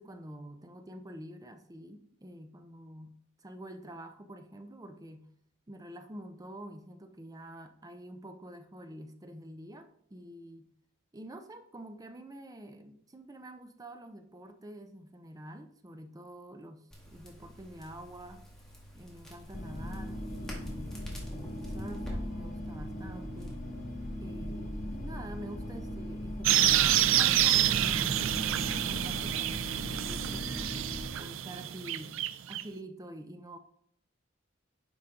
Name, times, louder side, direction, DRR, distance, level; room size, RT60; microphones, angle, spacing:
voice 1, 0.0-3.1 3.4-5.3 5.7-10.7 11.1-18.5 18.9-23.6 24.2-30.9 31.2-32.2 32.5-33.6, right 1 dB, 20° right, 7 dB, 0.6 m, -47 dB
Crackle, 16.9-26.5, equal, 5° left, 1.9 m, -49 dB
sound 1, 19.5-31.1, left 1 dB, 40° left, 1.2 m, -39 dB
sound 2, 26.4-32.6, right 11 dB, 70° right, 0.4 m, -28 dB
10.0 x 5.0 x 3.8 m, 0.71 s
head